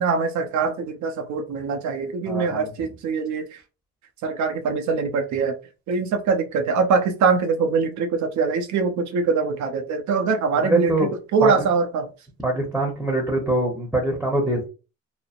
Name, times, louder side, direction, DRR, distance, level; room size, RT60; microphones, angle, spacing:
voice 1, 0.0-3.4 4.2-5.5 5.9-10.9 11.3-12.1, right 5 dB, 70° right, 0.6 m, -23 dB
voice 2, 2.2-2.7 10.6-11.1 11.4-11.5 12.4-14.7, right 2 dB, ahead, 0.9 m, -23 dB
3.1 x 2.0 x 2.5 m
cardioid pair, 80°, 30 cm